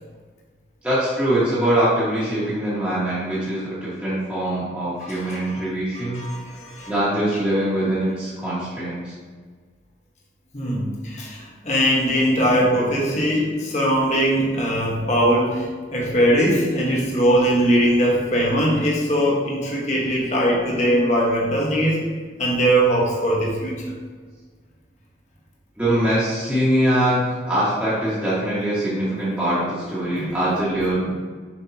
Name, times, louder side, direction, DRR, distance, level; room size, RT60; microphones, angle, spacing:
voice 1, 0.8-6.2 6.9-9.1 12.3-12.4 25.8-31.1, right 1 dB, 10° right, -11 dB, 1.7 m, -23 dB
voice 2, 5.0-5.7 5.9-6.9 10.5-22.0 22.4-23.9 30.2-30.3, equal, 40° left, -3 dB, 1.2 m, -21 dB
7.4 x 5.5 x 2.9 m, 1.5 s
head